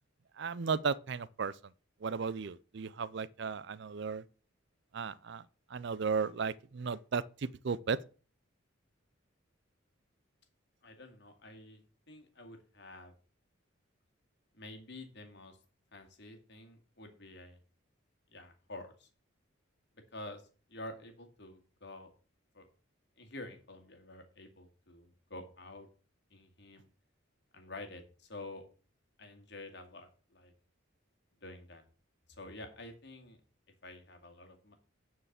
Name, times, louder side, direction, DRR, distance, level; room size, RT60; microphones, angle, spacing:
voice 1, 0.4-1.5 2.0-4.2 4.9-5.4 5.7-8.0, right 5 dB, 55° right, 0.4 m, -35 dB
voice 2, 10.8-11.8 12.1-13.1 14.5-15.6 15.9-17.6 18.3-19.1 20.1-22.1 22.5-22.7 23.2-25.9 26.3-26.9 27.5-28.7 29.2-30.5 31.4-31.8 32.3-33.4 33.8-34.8, left 2 dB, 55° left, 2.2 m, -49 dB
9.9 x 4.7 x 7.3 m
head